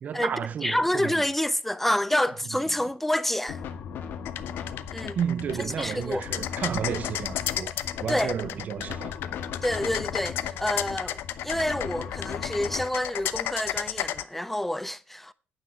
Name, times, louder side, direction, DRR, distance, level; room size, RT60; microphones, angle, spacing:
voice 1, 0.0-1.2 5.2-7.7 8.0-9.2, right 8 dB, 45° right, 0.5 m, -31 dB
voice 2, 0.6-3.6 4.9-5.2 5.8-6.3 8.1-8.4 9.6-15.3, left 1 dB, 5° left, 0.4 m, -28 dB
sound 1, 3.5-12.8, left 7 dB, 70° left, 1.4 m, -38 dB
sound 2, 4.2-14.2, left 12 dB, 85° left, 0.7 m, -33 dB
9.3 x 6.0 x 6.6 m
cardioid pair, 140°, 4 cm